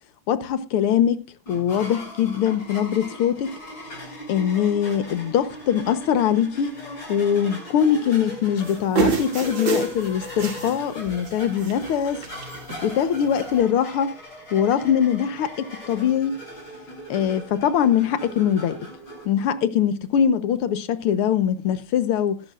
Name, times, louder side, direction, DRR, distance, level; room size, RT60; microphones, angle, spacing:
voice 1, 0.3-3.5 4.3-6.8 7.1-12.2 12.8-14.1 14.5-16.4 17.1-18.8 19.3-22.4, left 9 dB, 90° left, 2.0 m, -22 dB
sound 1, 1.5-19.2, left 1 dB, 55° left, 7.8 m, -38 dB
sound 2, 8.6-10.8 11.1-11.3 11.6-12.0 12.2-12.8 13.5-13.6, right 5 dB, 60° right, 3.2 m, -26 dB
21.0 x 11.5 x 2.4 m
omnidirectional pair, 2.4 m